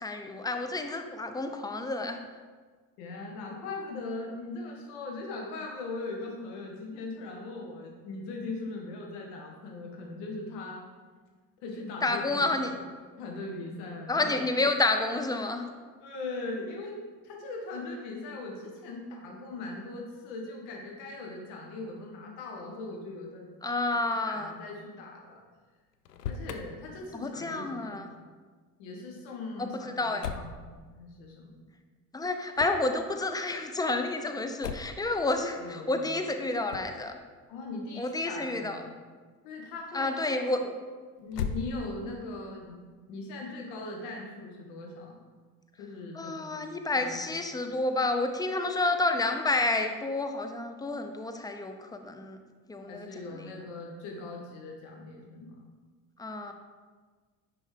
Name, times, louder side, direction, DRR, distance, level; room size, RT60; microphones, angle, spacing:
voice 1, 0.0-2.2 12.0-12.9 14.1-15.7 23.6-24.5 27.1-28.1 29.6-29.7 30.0-30.2 32.1-37.2 38.0-38.8 39.9-40.7 46.1-52.4 52.7-53.5 56.2-56.5, left 2 dB, 10° left, 6 dB, 0.6 m, -30 dB
voice 2, 3.0-10.8 11.6-12.7 13.2-14.4 16.0-17.0 17.2-23.5 24.2-25.4 26.3-28.1 28.8-30.6 30.9-31.5 35.6-36.1 37.5-38.7 39.4-40.6 41.2-42.8 43.1-45.2 45.8-46.7 47.0-47.2 52.9-55.6, left 3 dB, 60° left, 0 dB, 1.7 m, -40 dB
Motor vehicle (road), 25.9-26.6 30.2-30.6 32.5-32.9 34.6-35.1 36.7-37.0 41.3-42.1, left 6 dB, 80° left, 0.6 m, -36 dB
9.8 x 4.3 x 3.4 m, 1.4 s
figure-of-eight pair, 60°, 47 cm